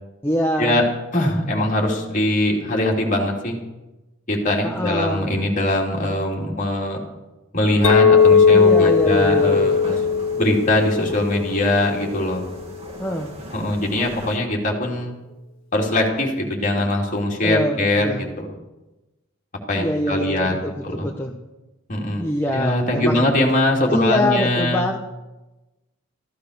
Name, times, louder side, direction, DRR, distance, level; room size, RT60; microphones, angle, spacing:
voice 1, 0.2-0.8 4.6-5.3 8.5-9.7 13.0-13.3 17.4-18.2 19.8-21.4 22.2-23.2 23.9-25.0, left 1 dB, 10° left, 0 dB, 0.9 m, -24 dB
voice 2, 1.1-3.6 4.3-7.0 7.5-9.9 10.4-12.4 13.5-15.1 15.7-18.5 19.7-20.5 20.8-21.1 21.9-22.3 22.5-24.9, left 1 dB, 35° left, -1 dB, 3.0 m, -21 dB
Chink clink, 7.8-12.3, left 6 dB, 65° left, 1.6 m, -18 dB
sound 1, 8.2-14.4, equal, 25° right, 1.9 m, -38 dB
15.0 x 13.0 x 6.7 m, 1.1 s
head